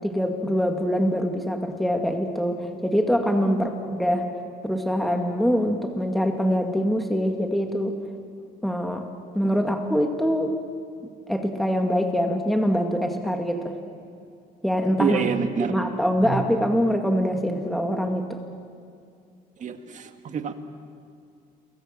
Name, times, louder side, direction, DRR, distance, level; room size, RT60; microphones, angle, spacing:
voice 1, 0.0-4.3 4.6-7.9 8.6-9.1 9.3-10.6 11.3-13.7 14.6-15.2 15.7-18.4, equal, ahead, 3 dB, 2.0 m, -24 dB
voice 2, 15.0-15.9 16.2-16.4 19.6-20.5, right 6 dB, 45° right, 7 dB, 1.9 m, -27 dB
28.0 x 22.5 x 7.6 m, 2.3 s
cardioid pair, 110°, 17 cm